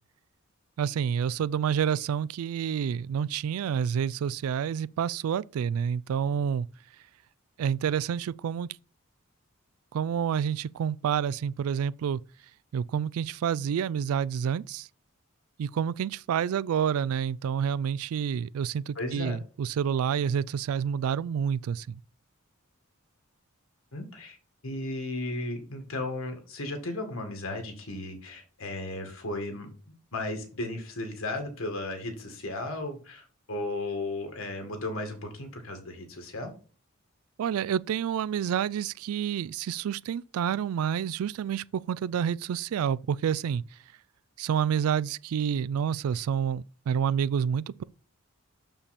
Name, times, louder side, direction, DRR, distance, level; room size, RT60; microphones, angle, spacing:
voice 1, 0.8-6.7 7.6-8.7 9.9-12.2 12.7-14.9 15.6-22.0 37.4-43.6 44.4-47.8, right 8 dB, 85° right, 0.3 m, -28 dB
voice 2, 19.0-19.4 23.9-24.4 24.6-29.7 30.1-36.5, left 2 dB, 70° left, 1.9 m, -35 dB
6.7 x 5.7 x 4.2 m
head